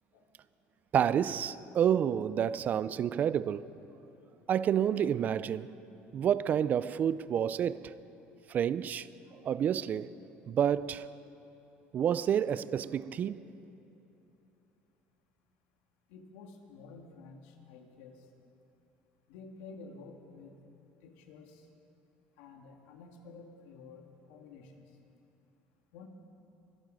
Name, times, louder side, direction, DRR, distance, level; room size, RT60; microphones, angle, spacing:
voice 1, 0.9-3.7 4.5-5.8 6.1-7.9 8.5-9.1 9.3-10.1 10.5-11.1 11.9-13.4, right 9 dB, 40° right, 0.4 m, -29 dB
voice 2, 16.1-18.2 19.3-20.6 21.0-21.7 22.4-24.8 25.9-26.1, left 4 dB, 90° left, 1.7 m, -51 dB
24.0 x 9.0 x 6.3 m
cardioid pair, 125°, 5 cm